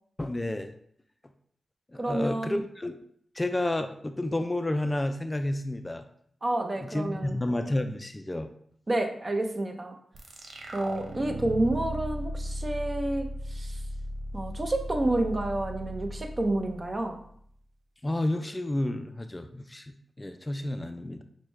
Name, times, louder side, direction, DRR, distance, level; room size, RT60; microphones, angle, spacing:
voice 1, 0.2-0.7 1.9-3.0 3.4-6.1 6.8-8.5 18.0-21.2, left 1 dB, 25° left, 8 dB, 0.3 m, -30 dB
voice 2, 1.9-2.6 6.4-7.4 8.9-10.0 10.7-13.8 14.3-17.2, right 1 dB, 40° right, 4 dB, 0.6 m, -29 dB
sound 1, 10.1-17.4, right 1 dB, 80° right, 0.6 m, -37 dB
6.0 x 2.2 x 3.2 m, 0.65 s
cardioid pair, 45°, 0 cm